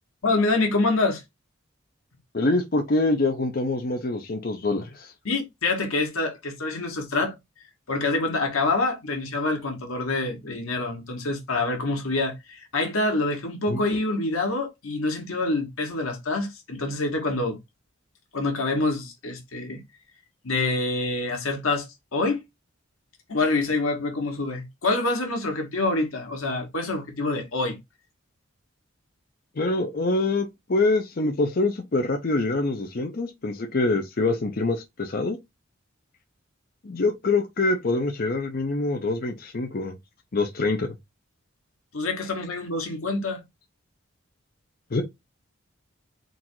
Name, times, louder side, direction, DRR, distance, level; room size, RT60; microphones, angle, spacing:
voice 1, 0.2-1.2 5.2-7.3 7.9-12.3 12.7-17.6 18.3-19.8 20.4-21.9 22.1-22.4 23.3-27.8 41.9-43.4, left 2 dB, 85° left, 1.3 m, -26 dB
voice 2, 2.3-5.1 13.7-13.8 29.6-35.4 36.8-39.9 40.3-40.9 44.9-45.0, left 2 dB, 45° left, 0.6 m, -25 dB
3.9 x 2.4 x 4.4 m
head